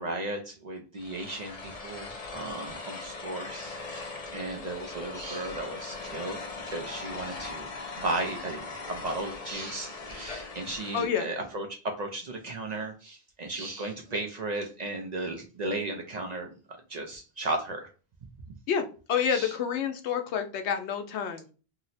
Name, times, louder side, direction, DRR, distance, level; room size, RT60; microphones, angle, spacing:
voice 1, 0.0-6.4 6.7-7.7 8.0-16.5 16.9-17.9 18.5-18.6 19.3-19.5, right 2 dB, 55° right, 3 dB, 0.5 m, -35 dB
sound 1, 1.0-11.3, left 3 dB, 40° left, 0.6 m, -40 dB
voice 2, 10.9-11.3 18.7-21.5, left 7 dB, 85° left, 6 dB, 0.9 m, -29 dB
2.8 x 2.0 x 3.9 m, 0.36 s
omnidirectional pair, 1.1 m